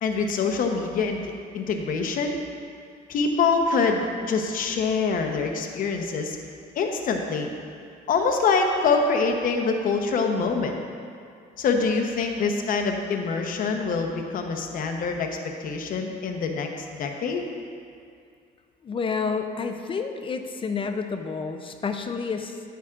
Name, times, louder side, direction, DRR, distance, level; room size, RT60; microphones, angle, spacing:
voice 1, 0.0-2.4 3.1-6.4 6.7-7.5 8.1-10.8 11.6-16.7 17.0-17.4, left 4 dB, 55° left, 3 dB, 0.9 m, -25 dB
voice 2, 18.8-22.6, left 5 dB, 30° left, 6 dB, 0.5 m, -29 dB
9.2 x 9.1 x 2.5 m, 2.3 s
cardioid pair, 110°, 17 cm